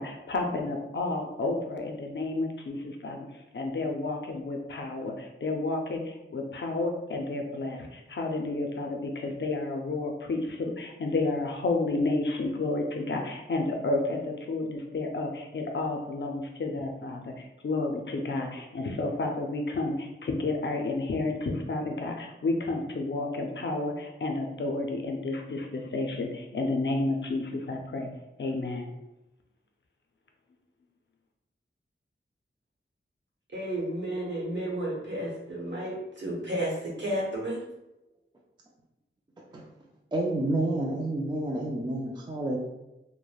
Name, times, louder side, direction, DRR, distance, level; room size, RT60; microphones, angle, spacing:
voice 1, 0.0-28.1 28.4-28.9, left 2 dB, 60° left, 2 dB, 0.4 m, -31 dB
voice 2, 33.5-37.6, right 1 dB, 60° right, -4 dB, 0.9 m, -32 dB
voice 3, 40.1-42.6, right 1 dB, 20° right, -2 dB, 0.3 m, -29 dB
3.1 x 2.1 x 2.3 m, 0.95 s
wide cardioid pair, 70°, 21 cm